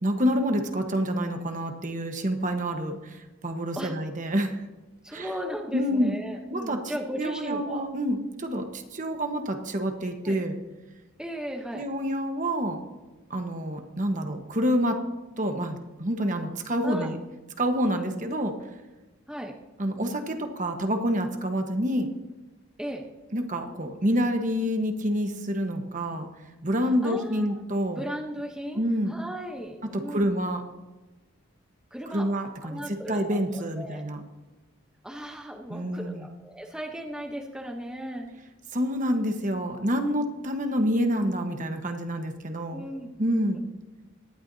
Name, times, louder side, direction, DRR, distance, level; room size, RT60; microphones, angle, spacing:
voice 1, 0.0-4.7 5.1-5.3 5.7-6.1 6.5-10.5 11.7-12.8 13.3-15.0 15.4-17.2 17.6-18.6 19.8-22.1 23.3-26.3 26.6-28.0 28.7-29.2 29.9-30.6 32.1-34.2 35.7-36.2 38.7-42.8 43.2-43.6, equal, 40° right, 5 dB, 1.2 m, -27 dB
voice 2, 5.0-7.9 10.2-10.4 11.2-11.9 16.8-17.1 19.3-19.5 22.8-23.0 27.0-27.6 28.0-28.8 29.1-30.3 31.9-32.3 32.6-34.0 35.0-38.3 42.7-43.1, equal, 5° right, 1 dB, 0.9 m, -36 dB
18.5 x 12.0 x 2.7 m, 1.1 s
head